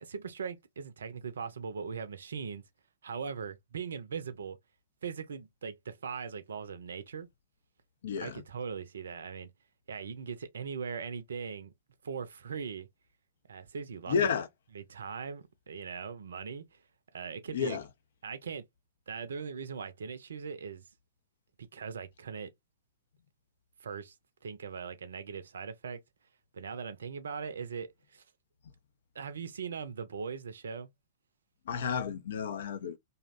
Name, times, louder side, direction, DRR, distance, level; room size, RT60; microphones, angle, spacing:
voice 1, 0.0-2.6 3.0-4.6 5.0-7.3 8.2-9.5 9.9-11.7 12.0-12.9 13.5-14.2 14.7-16.8 17.1-17.8 18.2-18.6 19.1-20.8 21.7-22.5 23.8-24.1 24.4-26.0 26.5-28.2 29.1-30.9, right 6 dB, 65° right, 0.5 m, -40 dB
voice 2, 8.0-8.4 14.1-14.5 17.5-17.8 31.7-33.0, left 6 dB, 60° left, 0.4 m, -31 dB
2.7 x 2.1 x 2.4 m
figure-of-eight pair, 105°, 0 cm